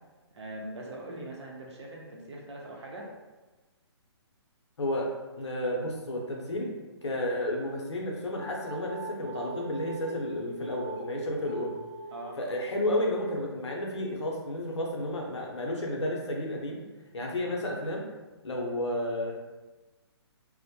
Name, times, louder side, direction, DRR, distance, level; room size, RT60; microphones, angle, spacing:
voice 1, 0.3-3.0 12.1-12.4 17.2-17.4, right 1 dB, 80° right, -1 dB, 0.7 m, -42 dB
voice 2, 4.8-6.7 7.0-11.7 12.4-16.8 17.1-18.1 18.4-19.4, left 1 dB, 90° left, 0 dB, 0.6 m, -32 dB
sound 1, 8.3-10.2 10.6-11.0 11.4-12.2, right 5 dB, 35° right, 0.6 m, -45 dB
sound 2, 8.6-15.9, right 1 dB, ahead, 0.7 m, -42 dB
2.2 x 2.1 x 2.7 m, 1.2 s
hypercardioid pair, 145°, 14 cm